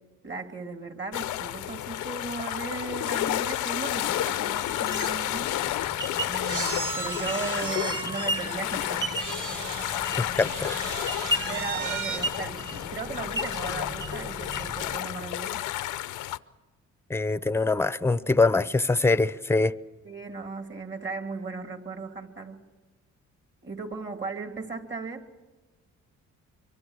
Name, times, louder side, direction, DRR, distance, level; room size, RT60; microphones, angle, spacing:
voice 1, 0.2-5.5 6.3-9.1 11.5-15.6 20.0-22.7 23.6-25.2, right 4 dB, 40° right, 2.8 m, -36 dB
sound 1, 1.1-16.4, left 14 dB, 90° left, 0.7 m, -31 dB
sound 2, 4.5-15.0, equal, 15° right, 1.1 m, -36 dB
sound 3, 5.0-5.1 5.3-5.5 6.5-10.0 10.4-12.2, right 5 dB, 85° right, 1.9 m, -35 dB
voice 2, 10.2-10.8 17.1-19.7, left 3 dB, 10° left, 0.7 m, -23 dB
25.0 x 23.5 x 6.5 m
cardioid pair, 90°, 30 cm